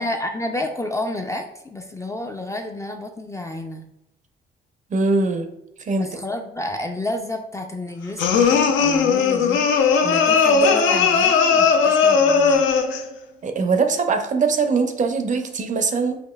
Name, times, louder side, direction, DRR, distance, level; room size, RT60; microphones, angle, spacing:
voice 1, 0.0-3.9 6.0-12.7, left 1 dB, 15° left, 3 dB, 0.3 m, -30 dB
voice 2, 4.9-5.5 5.9-6.1 13.4-16.2, right 4 dB, 40° right, 6 dB, 0.5 m, -21 dB
sound 1, 8.2-13.1, left 5 dB, 75° left, 0.5 m, -17 dB
4.9 x 2.6 x 2.3 m, 0.82 s
cardioid pair, 90°, 20 cm